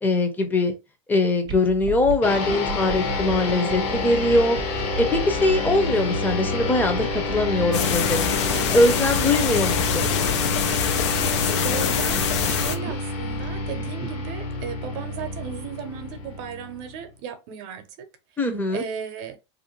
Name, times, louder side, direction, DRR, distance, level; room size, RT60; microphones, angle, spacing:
voice 1, 0.0-0.7 1.1-4.6 5.0-8.3 8.7-10.1 18.4-18.8, left 2 dB, 10° left, 0.7 m, -22 dB
sound 1, 1.4-14.6, right 3 dB, 30° right, 0.4 m, -35 dB
sound 2, 2.2-17.0, left 3 dB, 45° left, 0.9 m, -29 dB
sound 3, 7.7-12.8, left 7 dB, 80° left, 0.5 m, -24 dB
voice 2, 8.5-8.8 11.2-18.1 18.7-19.4, right 7 dB, 55° right, 0.8 m, -36 dB
2.6 x 2.2 x 2.9 m
supercardioid pair, 125°, 15 cm